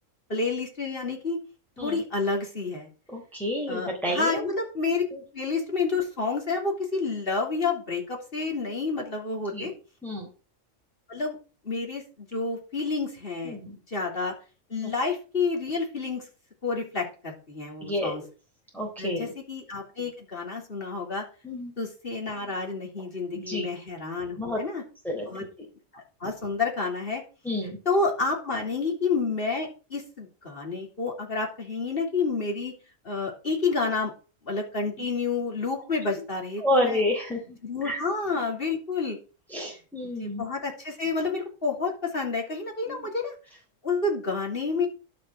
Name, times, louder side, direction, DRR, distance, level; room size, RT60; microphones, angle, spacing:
voice 1, 0.3-1.4 1.8-2.9 3.7-5.0 5.3-9.7 11.1-11.4 11.6-13.6 13.9-14.3 14.7-16.3 16.6-18.2 19.0-21.2 21.8-24.8 25.3-25.4 25.9-27.2 27.9-32.8 33.1-34.1 34.4-37.0 37.6-39.2 40.0-43.3 43.8-44.9, left 4 dB, 45° left, 0 dB, 3.6 m, -29 dB
voice 2, 3.1-4.4 5.1-5.2 9.5-9.7 10.0-10.3 13.5-13.8 14.8-14.9 17.8-18.1 18.7-19.3 21.4-21.7 23.5-23.7 24.4-24.6 25.1-25.3 27.5-27.8 36.6-37.6 37.8-38.0 39.5-40.4 42.9-43.1, left 1 dB, ahead, -2 dB, 3.7 m, -29 dB
11.5 x 6.9 x 6.0 m, 0.34 s
omnidirectional pair, 1.4 m